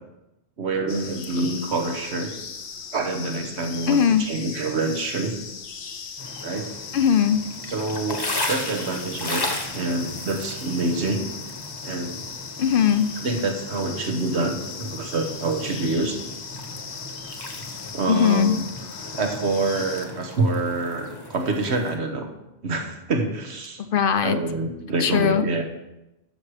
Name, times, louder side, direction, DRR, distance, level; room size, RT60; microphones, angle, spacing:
voice 1, 0.6-2.3 2.9-5.4 6.4-6.9 7.7-9.5 9.7-11.3 11.8-12.2 13.2-16.2 17.9-18.6 19.2-22.3 22.6-23.8 24.2-25.6, right 3 dB, 70° right, 4 dB, 1.5 m, -26 dB
sound 1, 0.9-20.1, left 6 dB, 75° left, 1.2 m, -38 dB
voice 2, 3.9-4.2 6.9-7.4 12.6-13.1 18.1-18.5 23.9-24.4 25.0-25.4, left 8 dB, 60° left, 11 dB, 0.6 m, -19 dB
sound 2, 6.2-22.0, left 2 dB, 20° left, 1.1 m, -36 dB
12.5 x 6.2 x 4.9 m, 0.94 s
omnidirectional pair, 1.2 m